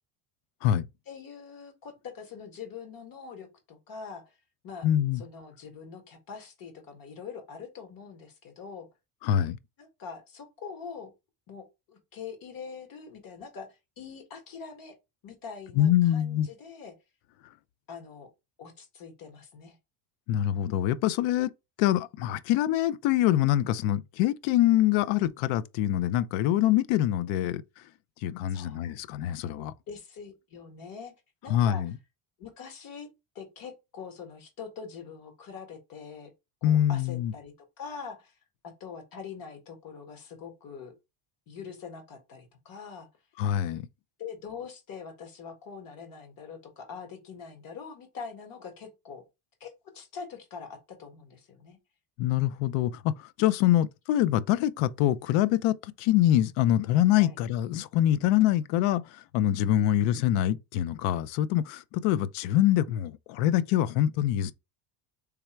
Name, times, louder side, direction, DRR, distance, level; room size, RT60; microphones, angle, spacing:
voice 1, 1.1-4.2 4.6-4.9 5.1-8.9 9.8-11.1 11.5-14.9 15.2-16.9 17.9-18.3 18.6-19.7 28.5-28.9 29.9-31.1 31.4-31.8 32.4-33.1 33.3-36.3 36.6-38.3 38.8-40.9 41.5-43.1 44.2-49.2 49.6-51.8 57.2-57.4, left 6 dB, 45° left, 1.7 m, -43 dB
voice 2, 4.8-5.2 9.2-9.6 15.8-16.5 20.3-21.5 21.8-27.6 28.2-29.7 31.5-31.9 36.6-37.3 43.4-43.9 52.2-64.5, left 12 dB, 75° left, 0.6 m, -25 dB
3.4 x 3.4 x 4.4 m
cardioid pair, 130°, 46 cm